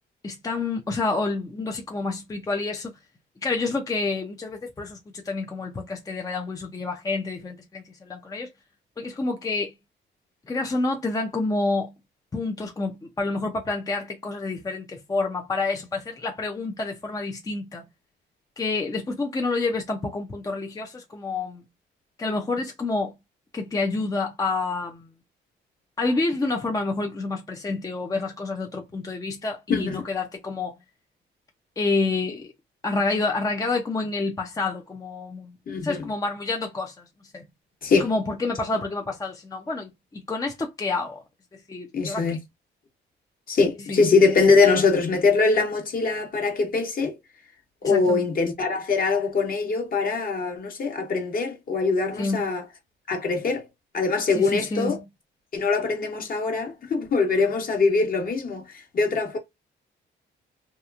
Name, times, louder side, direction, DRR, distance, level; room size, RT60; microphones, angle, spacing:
voice 1, 0.2-2.9 3.4-8.5 9.0-9.7 10.5-11.9 12.3-17.8 18.6-21.6 22.2-23.1 23.5-25.1 26.0-30.7 31.8-32.5 32.8-35.6 35.8-37.0 37.3-37.4 38.0-41.2 41.7-42.4 43.9-44.0 47.8-48.2 52.2-52.5 54.3-55.0, left 3 dB, 20° left, 0.5 m, -28 dB
voice 2, 29.7-30.0 35.7-36.1 37.8-38.1 41.9-42.4 43.5-47.1 47.8-52.6 53.1-53.6 53.9-55.0 55.5-59.4, left 4 dB, 45° left, 1.1 m, -22 dB
2.8 x 2.4 x 2.3 m
cardioid pair, 90°, 20 cm